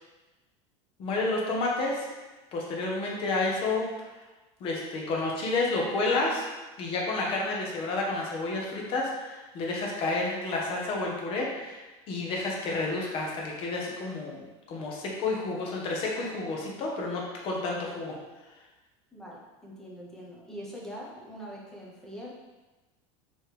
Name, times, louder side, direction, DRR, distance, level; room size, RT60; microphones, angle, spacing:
voice 1, 1.0-2.1 2.5-3.9 4.6-6.4 6.8-11.8 12.1-18.1, left 3 dB, 40° left, -1 dB, 1.0 m, -30 dB
voice 2, 19.1-22.3, equal, 5° left, -5 dB, 0.8 m, -43 dB
4.8 x 3.1 x 3.3 m, 1.2 s
cardioid pair, 155°, 14 cm